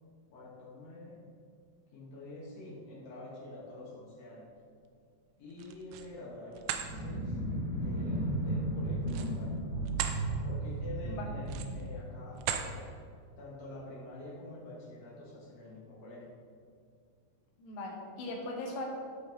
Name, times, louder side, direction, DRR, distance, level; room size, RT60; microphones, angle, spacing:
voice 1, 0.3-1.2 1.9-4.5 5.4-7.4 7.7-9.5 10.4-12.9 13.4-16.3, left 2 dB, 70° left, -7 dB, 1.6 m, -47 dB
sound 1, 5.5-6.1 6.5-6.9 9.0-10.2 10.7-10.9 11.4-11.9 12.4-12.7, right 9 dB, 85° right, 3.0 m, -37 dB
sound 2, 6.8-12.7, right 1 dB, 40° right, 2.7 m, -35 dB
voice 2, 17.6-18.9, left 2 dB, 90° left, -1 dB, 3.8 m, -39 dB
13.5 x 5.6 x 3.1 m, 2.1 s
omnidirectional pair, 5.4 m